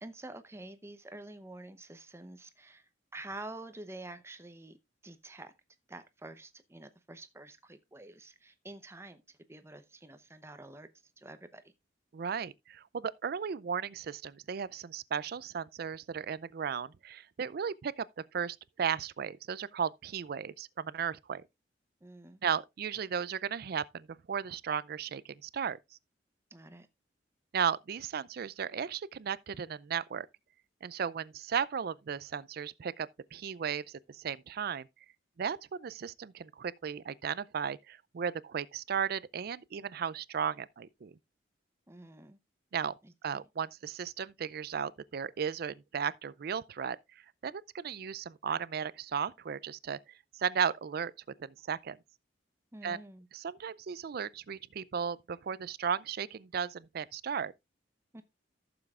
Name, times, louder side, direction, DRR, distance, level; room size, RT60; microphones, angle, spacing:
voice 1, 0.0-4.8 5.0-5.5 5.9-10.9 11.2-11.7 22.0-22.4 26.5-26.9 41.9-42.4 43.0-43.4 52.7-53.3 58.1-58.2, right 2 dB, 15° right, 0.8 m, -48 dB
voice 2, 12.1-18.1 18.3-21.4 22.4-25.8 27.5-30.3 30.8-33.8 34.1-34.9 35.4-41.1 42.7-42.9 43.2-47.0 47.4-50.0 50.4-51.1 51.4-52.0 52.8-53.0 53.3-57.5, right 7 dB, 55° right, 0.4 m, -35 dB
14.0 x 7.0 x 2.4 m
head